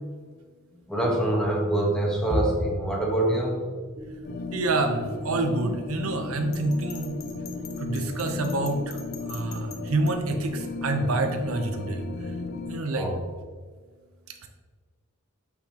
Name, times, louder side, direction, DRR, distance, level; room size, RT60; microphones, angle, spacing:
voice 1, 0.7-3.7 12.9-13.2, right 1 dB, 5° left, -2 dB, 1.1 m, -25 dB
sound 1, 4.0-12.7, equal, 30° right, 0.5 m, -40 dB
sound 2, 4.2-12.8, left 4 dB, 45° left, 0.3 m, -36 dB
voice 2, 4.5-7.2 7.8-9.0 9.3-12.3 12.7-13.1 14.4-14.5, right 2 dB, 75° right, 5 dB, 0.7 m, -27 dB
Bell, 6.5-10.1, left 8 dB, 70° left, 0.9 m, -45 dB
6.4 x 5.8 x 2.8 m, 1.5 s
head